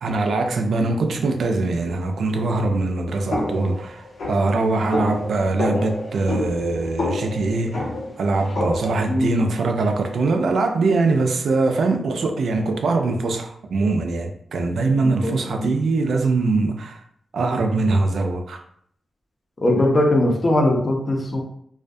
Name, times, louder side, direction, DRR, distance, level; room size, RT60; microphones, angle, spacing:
voice 1, 0.0-7.9 8.2-17.0 17.3-18.6, right 3 dB, 80° right, 0.3 m, -22 dB
sound 1, 3.3-9.1, left 2 dB, 85° left, 0.9 m, -28 dB
voice 2, 9.1-9.5 15.0-15.7 19.6-21.4, left 1 dB, 35° left, 0.5 m, -20 dB
2.3 x 2.2 x 2.6 m
wide cardioid pair, 110°, 0 cm